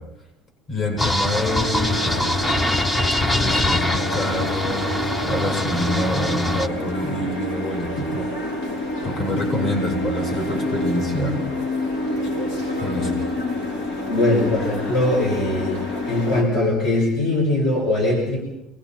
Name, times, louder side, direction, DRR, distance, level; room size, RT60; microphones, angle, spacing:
voice 1, 0.7-2.3 3.3-4.9 5.2-8.3 9.0-11.4 12.8-13.1, left 1 dB, 40° left, 2 dB, 7.7 m, -26 dB
sound 1, 1.0-6.7, left 1 dB, 15° left, 0.8 m, -23 dB
sound 2, 1.5-16.4, left 1 dB, 85° left, 6.7 m, -28 dB
voice 2, 14.1-15.8 16.1-18.4, left 2 dB, 60° left, 1 dB, 6.3 m, -21 dB
29.5 x 20.5 x 6.0 m, 0.84 s
cardioid pair, 145°, 0 cm